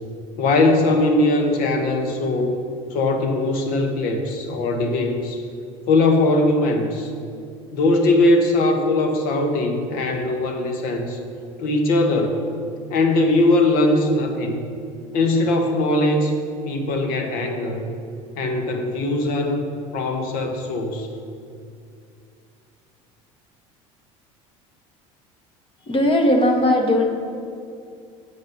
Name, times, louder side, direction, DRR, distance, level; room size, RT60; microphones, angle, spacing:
voice 1, 0.4-2.6 2.9-5.5 5.9-7.1 7.7-11.2 11.6-12.4 12.9-14.6 15.1-16.3 16.7-17.9 18.4-19.7 19.9-21.1, left 2 dB, 60° left, 4 dB, 1.2 m, -20 dB
voice 2, 25.9-27.0, left 1 dB, 30° left, 2 dB, 1.3 m, -18 dB
7.4 x 5.3 x 5.4 m, 2.4 s
hypercardioid pair, 75°, 17 cm